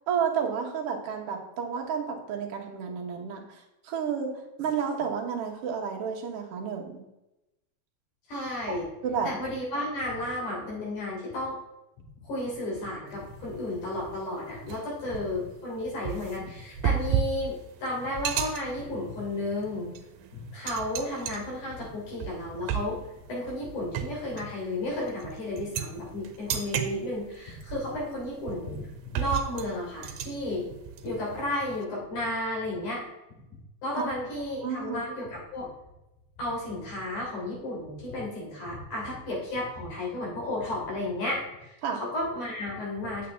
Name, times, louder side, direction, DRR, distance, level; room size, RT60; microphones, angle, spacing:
voice 1, 0.1-7.0 8.7-8.8 9.0-9.3 34.0-34.1 34.6-35.0 41.8-42.0, right 7 dB, 55° right, 1 dB, 2.0 m, -31 dB
voice 2, 8.3-8.8 9.2-11.6 12.2-19.9 20.3-23.0 23.3-30.6 31.0-33.0 33.8-35.7 36.4-41.7 42.0-43.3, left 1 dB, 75° left, -5 dB, 4.8 m, -33 dB
sound 1, 13.1-13.4 13.8-13.9 14.7-31.8, right 8 dB, 85° right, 2.2 m, -34 dB
8.9 x 8.4 x 3.4 m, 0.93 s
omnidirectional pair, 3.5 m